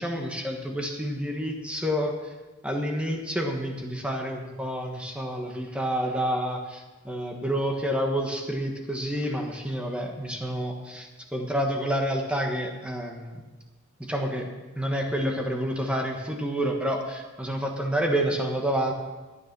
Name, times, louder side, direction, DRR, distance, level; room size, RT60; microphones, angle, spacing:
voice 1, 0.0-2.1 2.6-13.4 14.0-14.5 14.8-18.9, equal, 5° right, 1 dB, 1.3 m, -29 dB
13.5 x 9.6 x 6.1 m, 1.2 s
head